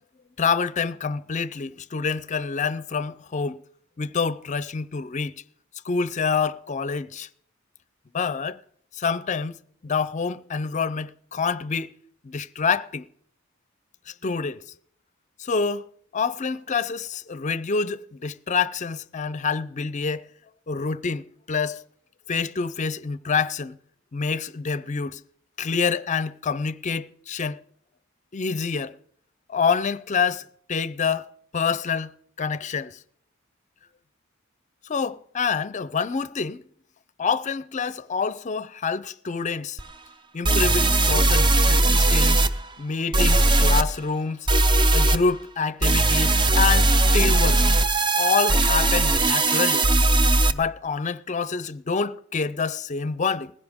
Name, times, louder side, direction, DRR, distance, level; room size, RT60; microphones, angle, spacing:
voice 1, 0.4-3.6 4.0-5.3 5.9-7.3 8.1-8.6 9.0-9.5 9.8-11.9 12.2-13.1 14.2-14.6 15.4-15.8 16.1-20.2 20.7-21.8 22.3-23.8 24.1-25.2 25.6-27.6 28.3-28.9 29.5-31.3 31.5-32.1 32.4-33.0 34.9-36.6 37.2-39.8 40.3-42.4 42.8-44.5 44.9-47.6 48.2-49.9 50.5-53.5, left 5 dB, 35° left, 0.5 m, -27 dB
sound 1, 39.8-39.9 40.4-42.5 43.1-43.8 44.5-45.2 45.8-50.5, right 2 dB, 25° right, 0.6 m, -19 dB
19.0 x 16.0 x 3.6 m
head